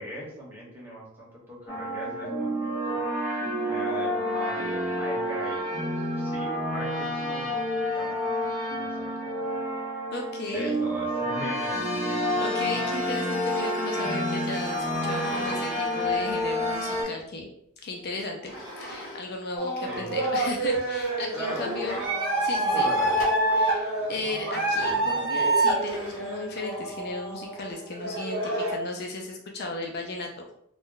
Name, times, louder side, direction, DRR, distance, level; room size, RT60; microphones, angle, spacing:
voice 1, 0.0-3.0 3.6-7.7 7.9-9.4 10.5-12.1 12.7-12.8 19.8-20.2 21.3-22.0 22.7-23.2, equal, 10° right, -5 dB, 1.0 m, -40 dB
sound 1, 1.7-17.0, equal, 15° left, 1.4 m, -29 dB
voice 2, 10.1-10.8 12.4-17.5 17.8-18.5 18.8-22.0 22.4-22.9 23.5-30.4, left 2 dB, 50° left, 2 dB, 0.4 m, -35 dB
sound 2, 15.0-15.6 16.0-17.4 18.4-19.2 19.5-19.6 20.3-20.4 20.8-20.9 21.3-22.0 23.1-23.7 24.7-25.1 25.8-26.4, equal, 75° left, 1.1 m, -40 dB
sound 3, 19.6-28.7, right 2 dB, 60° right, 1.0 m, -27 dB
2.5 x 2.1 x 3.7 m, 0.74 s
head